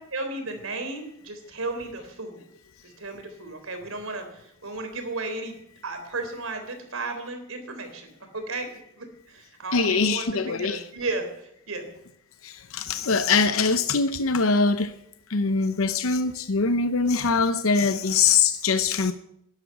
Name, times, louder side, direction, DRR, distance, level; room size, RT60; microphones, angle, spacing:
voice 1, 0.1-2.4 2.8-5.5 5.8-8.7 9.0-11.9, right 3 dB, 90° right, 3.7 m, -34 dB
voice 2, 9.7-10.8 12.4-14.9 15.3-19.1, left 4 dB, 90° left, 0.8 m, -23 dB
12.5 x 11.0 x 9.7 m
head